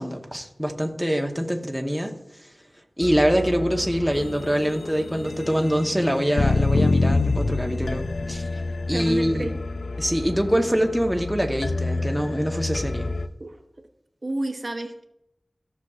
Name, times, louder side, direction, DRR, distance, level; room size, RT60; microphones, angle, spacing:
voice 1, 0.0-2.5 3.0-8.4 8.9-9.5 10.0-13.1, equal, ahead, 2 dB, 1.0 m, -24 dB
sound 1, 3.0-13.3, left 3 dB, 90° left, 0.4 m, -27 dB
voice 2, 8.9-9.5 13.4-13.6 14.2-15.1, right 2 dB, 50° right, 4 dB, 0.8 m, -30 dB
14.5 x 6.0 x 2.4 m, 0.83 s
wide cardioid pair, 50°, 0 cm